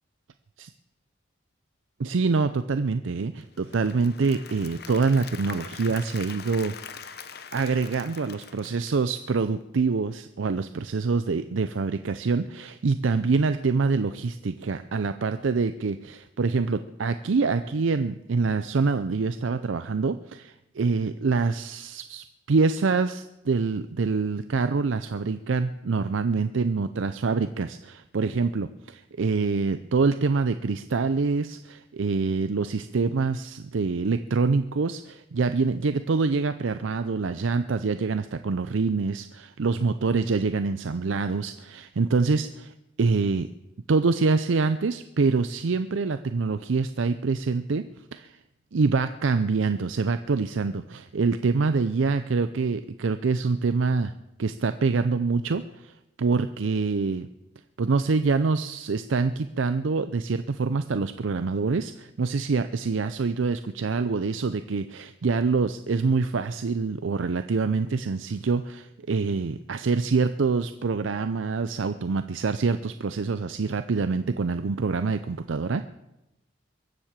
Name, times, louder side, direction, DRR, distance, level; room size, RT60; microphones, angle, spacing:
voice 1, 2.0-43.5 43.9-48.4 48.7-54.1 54.4-57.3 57.8-75.9, right 4 dB, 80° right, 11 dB, 0.5 m, -25 dB
Applause / Crowd, 3.4-9.5, left 7 dB, 50° left, 0.8 m, -43 dB
22.5 x 7.6 x 7.3 m, 0.93 s
head